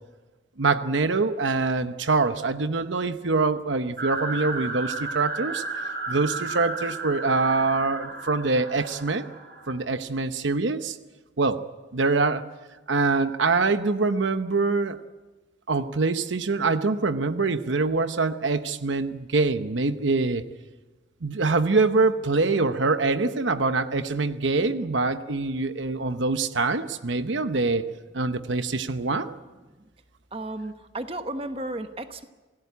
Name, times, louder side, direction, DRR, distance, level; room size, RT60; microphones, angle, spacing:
voice 1, 0.6-5.6 6.1-9.3 9.7-11.0 11.4-11.6 11.9-12.5 12.9-15.0 15.7-20.4 21.2-29.4, right 3 dB, 80° right, 10 dB, 0.9 m, -24 dB
sound 1, 4.0-9.8, right 3 dB, 55° right, 6.2 m, -33 dB
voice 2, 30.3-32.2, right 1 dB, 30° right, 8 dB, 1.2 m, -33 dB
28.0 x 17.0 x 8.4 m, 1.2 s
head